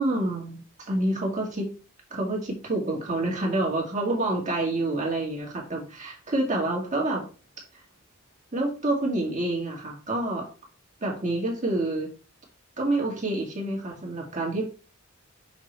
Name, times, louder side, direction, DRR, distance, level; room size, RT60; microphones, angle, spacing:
voice 1, 0.0-1.7 2.1-7.3 8.5-10.4 11.0-12.1 12.8-14.6, right 2 dB, 35° right, -1 dB, 1.9 m, -28 dB
6.0 x 3.7 x 4.5 m, 0.35 s
head